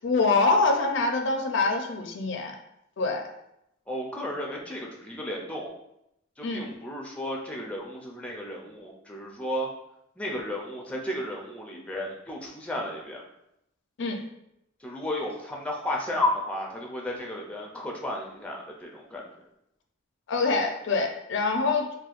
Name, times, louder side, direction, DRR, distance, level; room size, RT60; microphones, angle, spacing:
voice 1, 0.0-2.6 3.0-3.2 6.4-6.6 14.0-14.2 20.3-22.0, left 3 dB, 65° left, 4 dB, 0.5 m, -25 dB
voice 2, 3.9-5.7 6.4-9.7 10.2-13.2 14.8-19.2, left 1 dB, 5° left, -1 dB, 0.4 m, -33 dB
4.2 x 2.2 x 2.4 m, 0.81 s
head